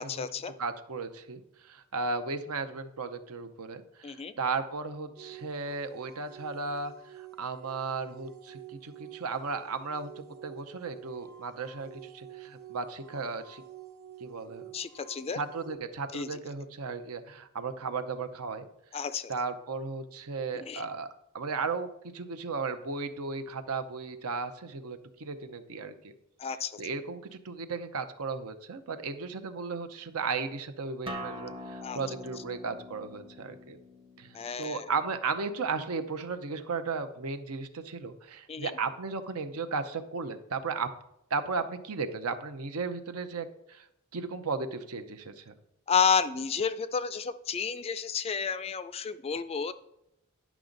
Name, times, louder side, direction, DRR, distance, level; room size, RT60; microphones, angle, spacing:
voice 1, 0.0-0.6 4.0-4.3 14.7-15.4 16.1-16.4 18.9-19.3 20.5-20.8 26.4-26.8 31.8-32.0 34.3-34.8 38.5-38.7 45.9-49.7, left 6 dB, 25° left, 13 dB, 0.3 m, -31 dB
voice 2, 0.6-13.6 14.2-14.7 15.3-18.6 19.3-21.1 21.3-26.1 26.8-33.8 34.2-40.9 41.3-43.9 44.1-45.5, right 4 dB, 75° right, 8 dB, 0.7 m, -35 dB
sound 1, 5.2-15.8, right 10 dB, 50° right, 1.1 m, -49 dB
Acoustic guitar, 31.1-36.2, left 1 dB, 25° right, 0.8 m, -44 dB
10.0 x 6.0 x 3.9 m, 0.81 s
head